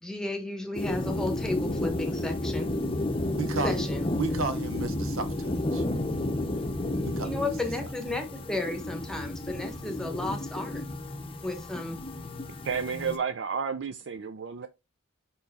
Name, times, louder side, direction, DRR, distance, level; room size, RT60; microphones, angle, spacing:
voice 1, 0.0-2.7 3.6-4.1 7.2-10.8 11.4-12.0, left 2 dB, 5° left, 1.0 m, -33 dB
sound 1, 0.7-13.2, left 1 dB, 25° left, 0.7 m, -32 dB
voice 2, 3.4-3.9 4.2-5.8 7.1-7.5, right 3 dB, 80° right, 0.9 m, -33 dB
voice 3, 12.6-14.7, right 6 dB, 60° right, 0.4 m, -31 dB
5.3 x 4.6 x 4.1 m
head